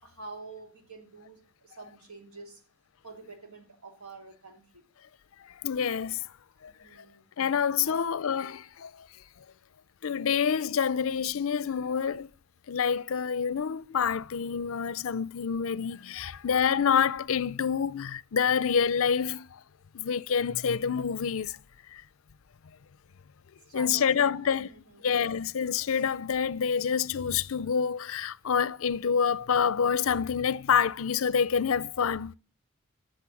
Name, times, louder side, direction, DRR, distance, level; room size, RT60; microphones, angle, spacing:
voice 1, 0.0-2.6 3.0-4.8 6.7-7.3 7.8-8.1 23.7-25.1, right 3 dB, 90° right, 3.0 m, -47 dB
voice 2, 5.6-6.2 6.6-6.7 7.4-8.9 10.0-12.3 12.7-19.6 19.9-21.5 21.9-22.0 23.7-24.7 25.0-32.3, left 7 dB, 70° left, 0.5 m, -27 dB
13.0 x 6.6 x 7.1 m
head